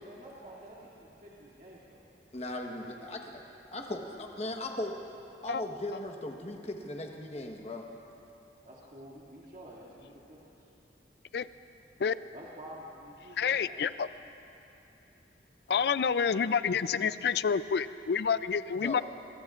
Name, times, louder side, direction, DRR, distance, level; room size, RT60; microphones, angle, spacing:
voice 1, 0.0-2.0 8.6-10.7 12.3-13.9 15.7-16.2, right 1 dB, 50° right, -6 dB, 2.3 m, -49 dB
voice 2, 2.3-3.4 3.7-4.9 5.4-7.9 18.8-19.0, left 1 dB, 35° left, 2 dB, 1.2 m, -38 dB
voice 3, 13.4-14.1 15.7-19.0, left 6 dB, 65° left, 15 dB, 0.4 m, -28 dB
23.5 x 22.0 x 2.5 m, 2.9 s
head